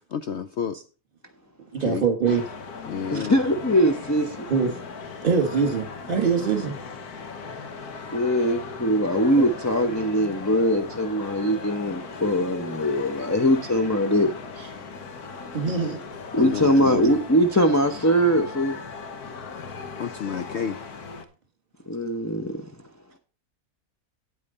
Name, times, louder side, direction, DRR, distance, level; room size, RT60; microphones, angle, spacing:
voice 1, 0.1-0.8 1.7-2.0 2.9-3.4 5.3-5.7 6.2-6.4 15.5-15.9 16.4-17.2 20.0-20.8, left 7 dB, 60° left, 0.8 m, -31 dB
voice 2, 1.7-2.4 4.5-4.7 5.2-6.8 9.4-9.5 15.5-16.0, right 6 dB, 35° right, 2.0 m, -23 dB
sound 1, 2.2-21.2, left 4 dB, 80° left, 1.6 m, -38 dB
voice 3, 3.1-4.4 8.1-14.7 16.3-18.8 21.9-22.5, equal, 20° left, 0.5 m, -22 dB
9.0 x 8.7 x 4.2 m
omnidirectional pair, 1.6 m